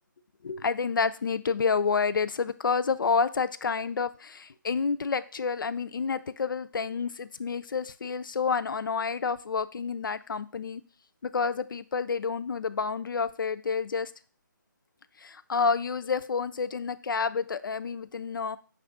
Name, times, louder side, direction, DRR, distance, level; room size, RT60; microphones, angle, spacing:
voice 1, 0.4-10.8 11.2-14.1 15.2-18.6, left 5 dB, 80° left, 13 dB, 0.4 m, -29 dB
6.0 x 2.4 x 3.5 m, 0.39 s
hypercardioid pair, 165°, 11 cm